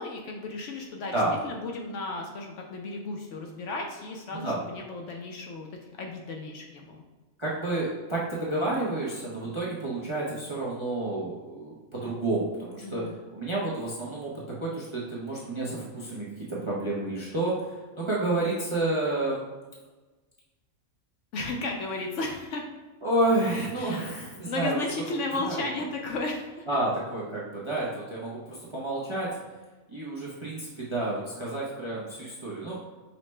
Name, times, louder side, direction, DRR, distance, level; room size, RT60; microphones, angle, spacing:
voice 1, 0.0-5.7 6.0-7.0 12.8-13.2 21.3-22.6 23.8-24.0 24.5-26.7, left 2 dB, 70° left, 2 dB, 0.8 m, -34 dB
voice 2, 7.4-13.1 13.3-14.3 14.6-19.4 23.0-24.8 25.4-25.6 26.7-29.3 29.9-32.8, right 2 dB, 35° right, -6 dB, 0.5 m, -30 dB
5.6 x 2.1 x 3.1 m, 1.2 s
omnidirectional pair, 1.5 m